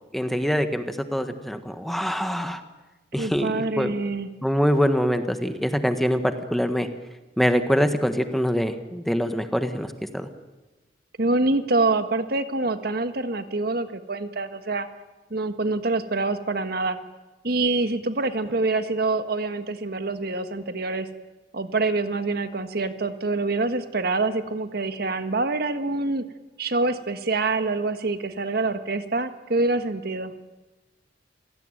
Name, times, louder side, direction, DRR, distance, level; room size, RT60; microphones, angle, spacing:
voice 1, 0.1-2.6 3.1-3.9 4.4-6.9 7.4-10.3, equal, ahead, 8 dB, 1.5 m, -24 dB
voice 2, 3.2-4.3 11.2-14.9 15.3-17.0 17.4-21.1 21.5-26.2 26.6-30.3, right 3 dB, 60° right, 9 dB, 1.5 m, -25 dB
28.5 x 18.0 x 9.1 m, 1.1 s
head